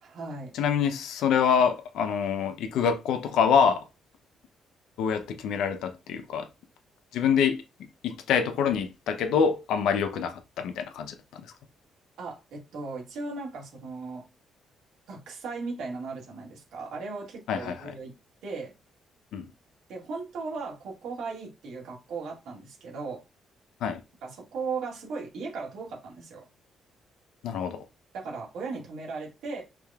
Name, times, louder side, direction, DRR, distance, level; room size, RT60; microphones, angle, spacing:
voice 1, 0.0-0.5 12.2-14.3 15.1-18.1 18.4-18.7 19.9-23.2 24.2-26.4 28.1-29.6, right 4 dB, 80° right, 1.8 m, -37 dB
voice 2, 0.5-3.8 5.0-6.5 7.1-7.6 8.0-11.5 17.5-17.9 19.3-19.5 23.8-24.0 27.4-27.9, left 7 dB, 80° left, 0.5 m, -26 dB
4.8 x 2.9 x 2.3 m
cardioid pair, 90°, 0 cm